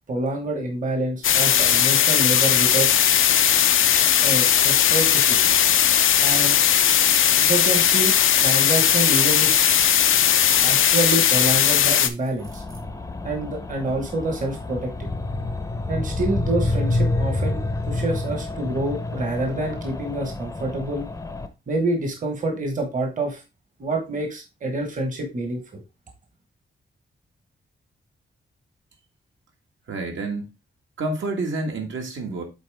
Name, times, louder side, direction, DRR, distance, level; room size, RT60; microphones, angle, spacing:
voice 1, 0.1-2.9 4.2-5.5 6.2-6.6 7.4-8.1 8.4-9.6 10.6-12.6 13.2-15.1 15.9-21.1 21.7-23.4 23.8-25.8, right 2 dB, 40° right, 1.2 m, -27 dB
sound 1, 1.2-12.1, left 9 dB, 90° left, 0.6 m, -18 dB
sound 2, 8.4-11.8 12.1-12.8, right 3 dB, 90° right, 2.4 m, -39 dB
sound 3, 12.4-21.5, left 2 dB, 15° left, 0.6 m, -28 dB
voice 2, 29.9-30.5 31.0-32.4, right 2 dB, 75° right, 1.6 m, -28 dB
8.1 x 4.1 x 3.4 m
wide cardioid pair, 175°, 20 cm